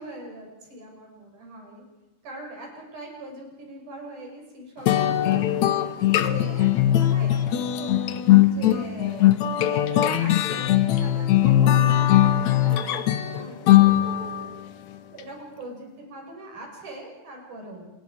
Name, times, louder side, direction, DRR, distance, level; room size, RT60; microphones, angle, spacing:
voice 1, 0.0-1.8 2.2-4.9 5.2-7.9 8.4-9.4 9.7-14.4 15.1-17.9, right 2 dB, 50° right, 0 dB, 7.3 m, -41 dB
sound 1, 4.9-14.5, left 12 dB, 85° left, 1.6 m, -20 dB
27.0 x 22.0 x 5.0 m, 1.0 s
omnidirectional pair, 4.6 m